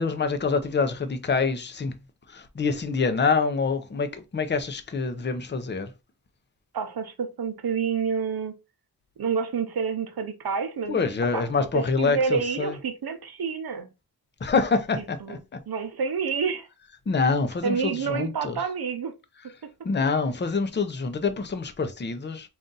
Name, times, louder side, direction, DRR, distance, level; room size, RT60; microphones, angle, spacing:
voice 1, 0.0-2.0 2.3-5.9 10.9-12.8 14.4-15.6 17.1-18.6 19.8-22.5, left 4 dB, 25° left, 0.5 m, -26 dB
voice 2, 6.7-8.5 9.2-11.0 11.3-13.9 15.0-15.4 15.7-16.7 17.6-19.1 19.6-19.7, right 6 dB, 65° right, 0.8 m, -28 dB
3.9 x 2.4 x 3.8 m
wide cardioid pair, 170°, 40 cm